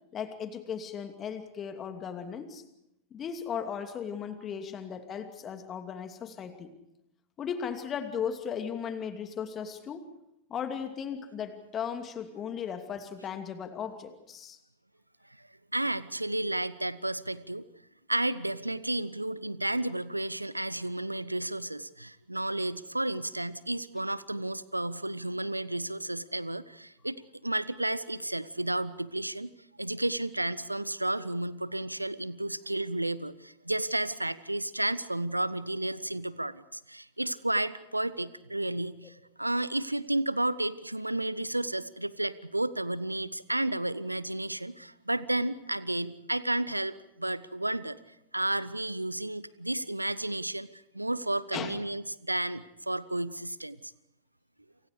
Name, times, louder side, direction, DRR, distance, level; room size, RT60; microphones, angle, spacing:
voice 1, 0.1-2.6 3.1-6.7 7.4-10.0 10.5-14.6 51.5-51.8, left 7 dB, 25° left, 7 dB, 2.7 m, -36 dB
voice 2, 15.4-17.6 18.1-29.5 29.8-48.0 48.3-53.9, right 1 dB, 85° right, 18 dB, 0.9 m, -32 dB
29.0 x 27.5 x 5.0 m, 0.84 s
figure-of-eight pair, 90°, 0 cm